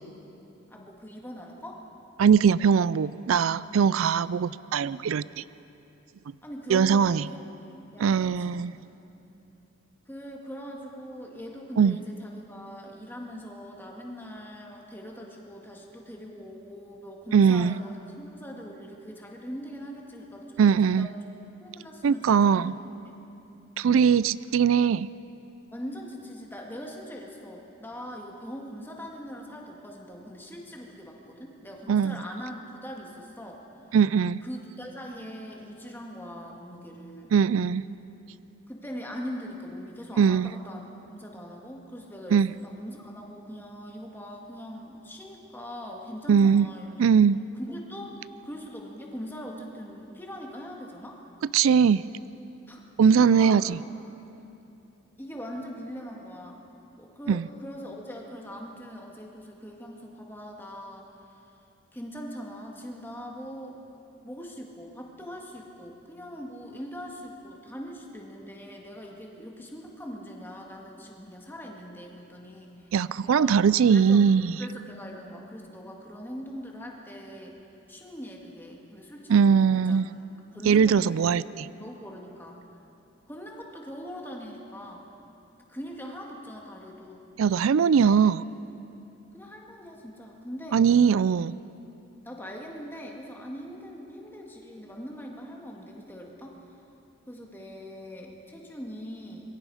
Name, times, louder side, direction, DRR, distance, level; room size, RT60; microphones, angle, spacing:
voice 1, 0.7-1.9 6.4-7.4 7.7-8.7 10.1-21.1 21.6-22.7 25.7-33.6 34.4-37.3 38.7-47.0 47.6-48.2 48.4-51.2 52.7-52.9 53.1-53.6 55.2-56.6 57.0-61.5 61.9-63.8 64.2-72.9 73.2-73.6 73.9-74.2 74.6-77.6 77.9-80.0 80.5-81.4 81.8-82.6 83.3-85.1 85.6-87.3 89.3-90.8 92.2-96.6 97.3-99.5, equal, 10° left, -1 dB, 2.2 m, -41 dB
voice 2, 2.2-5.4 6.7-7.3 8.0-8.7 11.8-12.0 17.3-17.7 20.6-21.1 22.0-22.7 23.8-25.1 31.9-32.2 33.9-34.4 37.3-37.8 40.2-40.5 42.3-42.5 46.3-46.7 47.0-47.4 51.5-52.0 53.0-53.8 57.3-57.4 72.9-74.6 79.3-80.1 80.7-81.4 87.4-88.4 90.7-91.6, right 6 dB, 85° right, 18 dB, 0.4 m, -21 dB
26.0 x 22.5 x 5.0 m, 2.8 s
head